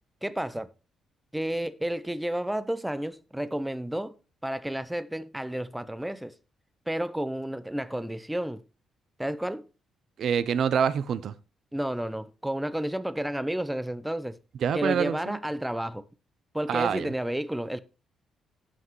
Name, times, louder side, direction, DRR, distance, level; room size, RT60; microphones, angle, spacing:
voice 1, 0.2-0.7 1.3-4.2 4.4-6.3 6.9-8.6 9.2-9.7 11.7-14.4 14.7-16.0 16.5-17.8, right 1 dB, 5° right, 0.5 m, -31 dB
voice 2, 10.2-11.3 14.6-15.4 16.7-17.1, right 7 dB, 65° right, 0.4 m, -26 dB
15.0 x 5.8 x 3.0 m
cardioid pair, 90°, 0 cm